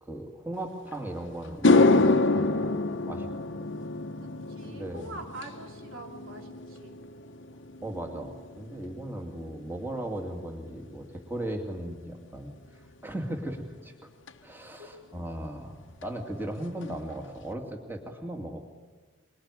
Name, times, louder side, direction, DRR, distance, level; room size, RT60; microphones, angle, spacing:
voice 1, 0.0-3.3 3.5-3.7 4.6-5.2 7.8-12.5 13.0-13.9 14.4-18.6, right 1 dB, 10° right, 2 dB, 2.4 m, -37 dB
sound 1, 0.9-1.0 1.4-10.0 10.2-10.7 14.3-14.4 16.0-16.1 16.4-16.5 16.8-17.3, left 3 dB, 60° left, 1.1 m, -27 dB
voice 2, 4.2-7.0 14.6-15.0, right 1 dB, 70° right, 2 dB, 3.7 m, -45 dB
24.0 x 22.0 x 9.9 m, 1.3 s
head